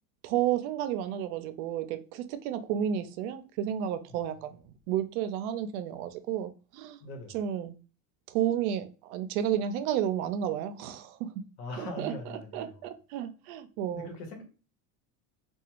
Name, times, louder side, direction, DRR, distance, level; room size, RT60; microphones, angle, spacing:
voice 1, 0.2-7.0 7.3-7.8 8.3-11.4 11.8-14.1, right 10 dB, 85° right, 0.6 m, -32 dB
voice 2, 7.0-7.4 11.6-12.7 13.9-14.4, left 2 dB, 90° left, 1.1 m, -41 dB
2.4 x 2.3 x 2.9 m
supercardioid pair, 130°, 42 cm